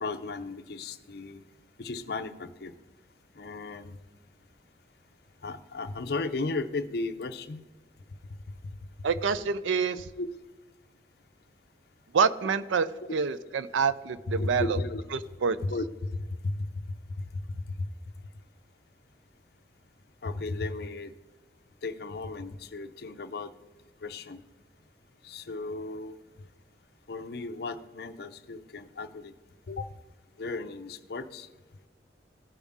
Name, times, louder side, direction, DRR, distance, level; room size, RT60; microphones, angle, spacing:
voice 1, 0.0-1.4 1.8-2.7 3.3-4.0 5.4-7.6 8.6-8.7 10.2-10.3 13.0-13.1 14.3-15.1 15.6-17.9 20.2-21.1 21.8-23.5 24.0-24.4 25.2-26.2 27.1-29.3 29.7-29.9 30.4-31.5, left 3 dB, 55° left, 8 dB, 0.6 m, -35 dB
voice 2, 9.0-10.0 12.1-14.8 15.1-15.6, right 5 dB, 90° right, 15 dB, 0.5 m, -27 dB
15.0 x 5.5 x 3.6 m, 1.2 s
head